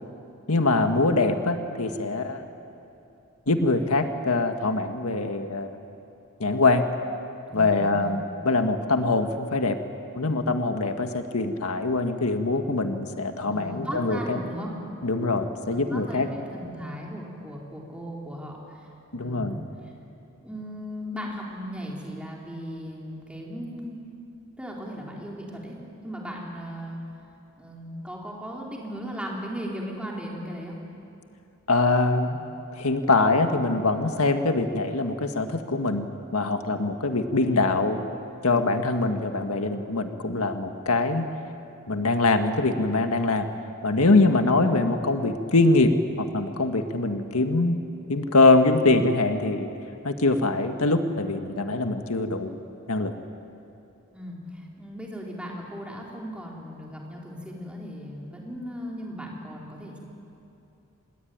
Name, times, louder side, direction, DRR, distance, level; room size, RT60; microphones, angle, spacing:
voice 1, 0.5-2.4 3.5-5.7 6.4-6.8 7.5-9.8 10.1-14.4 15.0-16.3 19.1-19.5 31.7-32.4 32.7-38.0 38.4-41.3 41.9-43.5 43.8-47.8 48.1-49.7 50.0-52.5 52.9-53.1, left 2 dB, 85° left, 6 dB, 1.6 m, -23 dB
voice 2, 7.5-8.1 13.4-14.7 15.7-19.6 20.4-24.0 24.6-25.8 26.0-27.0 27.6-30.8 44.2-44.5 54.1-60.0, equal, 5° right, -2 dB, 4.0 m, -37 dB
26.5 x 20.5 x 9.4 m, 2.8 s
head